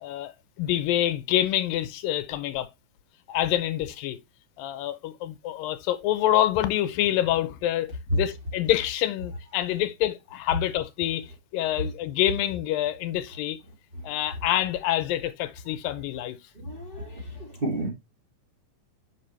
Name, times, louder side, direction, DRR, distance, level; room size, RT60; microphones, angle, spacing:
voice 1, 0.0-2.7 3.3-4.2 4.6-11.3 11.5-13.6 14.0-16.4, left 13 dB, 90° left, 2.5 m, -26 dB
voice 2, 16.6-17.9, right 2 dB, 20° right, 2.0 m, -32 dB
7.3 x 5.9 x 3.3 m
omnidirectional pair, 4.1 m